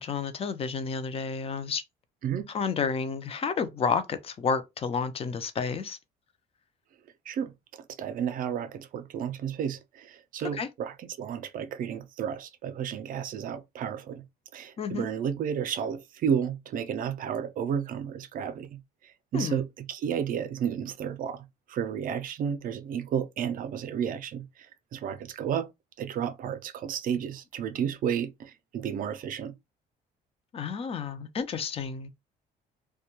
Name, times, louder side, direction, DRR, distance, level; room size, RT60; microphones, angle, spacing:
voice 1, 0.0-1.8 2.5-6.0 10.5-10.7 14.8-15.1 19.3-19.6 30.5-32.2, left 5 dB, 35° left, 0.5 m, -31 dB
voice 2, 8.0-14.2 14.5-18.8 19.3-21.4 21.7-24.5 24.9-25.7 26.0-29.5, right 8 dB, 55° right, 0.5 m, -32 dB
2.2 x 2.1 x 2.9 m
cardioid pair, 110°, 17 cm